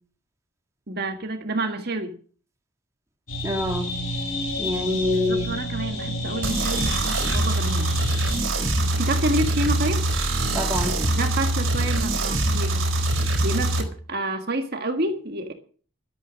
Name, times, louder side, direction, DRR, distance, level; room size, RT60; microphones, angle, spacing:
voice 1, 0.9-2.1 5.1-7.9 8.9-10.0 11.2-12.9 13.2-15.5, right 2 dB, 50° right, 5 dB, 1.7 m, -29 dB
sound 1, 3.3-8.4, left 1 dB, 80° left, 5.6 m, -30 dB
voice 2, 3.4-4.0 4.6-5.5 10.5-11.1, left 1 dB, 15° right, 2 dB, 2.1 m, -26 dB
sound 2, 6.4-13.8, right 1 dB, 65° right, 4.1 m, -23 dB
12.0 x 11.5 x 6.2 m, 0.42 s
head